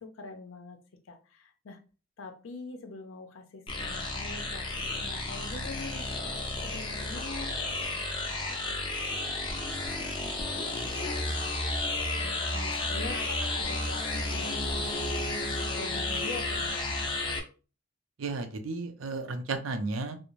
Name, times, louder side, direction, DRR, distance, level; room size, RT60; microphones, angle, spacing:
voice 1, 0.0-0.8 1.1-1.8 2.2-7.5 7.8-10.2 10.6-11.5 12.1-17.0, left 3 dB, 85° left, 6 dB, 0.5 m, -45 dB
sound 1, 3.7-17.4, left 2 dB, 25° left, 0.5 m, -32 dB
voice 2, 18.2-20.2, right 3 dB, 90° right, 7 dB, 0.5 m, -33 dB
2.5 x 2.0 x 3.0 m, 0.35 s
head